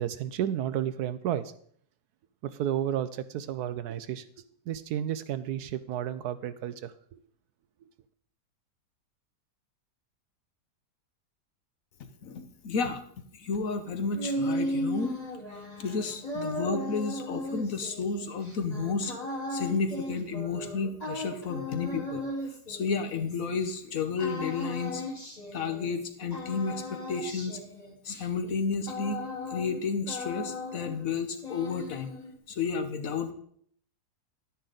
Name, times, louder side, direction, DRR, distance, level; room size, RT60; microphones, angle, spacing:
voice 1, 0.0-1.4 2.4-4.2 4.7-7.2, right 10 dB, 75° right, 13 dB, 1.0 m, -32 dB
voice 2, 12.2-13.0 13.3-15.2 15.8-19.2 19.5-22.2 22.7-25.0 25.5-27.6 28.0-29.2 29.5-32.1 32.5-33.3, left 5 dB, 60° left, 8 dB, 1.2 m, -31 dB
sound 1, 13.9-23.7 24.2-26.1 26.3-29.8 30.1-31.1 31.4-32.4, left 1 dB, 25° left, 1.8 m, -36 dB
10.5 x 9.8 x 3.9 m, 0.63 s
omnidirectional pair, 1.8 m